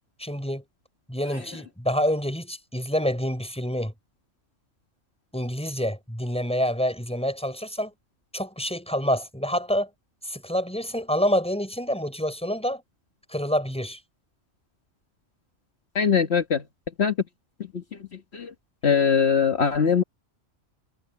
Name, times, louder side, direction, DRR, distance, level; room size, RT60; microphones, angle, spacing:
voice 1, 0.2-0.6 1.1-3.9 5.3-7.9 8.3-9.9 10.2-12.8 13.3-14.0, equal, 5° left, 5.6 m, -27 dB
voice 2, 15.9-16.6 17.0-17.1 18.3-18.5 18.8-20.0, left 6 dB, 60° left, 1.7 m, -21 dB
omnidirectional pair, 1.3 m